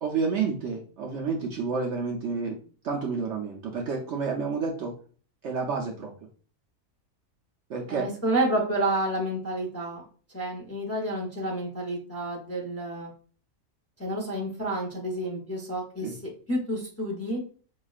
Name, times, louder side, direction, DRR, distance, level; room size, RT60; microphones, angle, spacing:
voice 1, 0.0-2.6 2.8-4.9 5.4-6.1 7.7-8.1 16.0-16.1, right 5 dB, 65° right, 0 dB, 0.8 m, -29 dB
voice 2, 7.9-10.0 10.3-13.1 14.0-17.4, right 1 dB, 15° left, -2 dB, 0.6 m, -30 dB
4.9 x 2.3 x 2.4 m, 0.41 s
omnidirectional pair, 1.5 m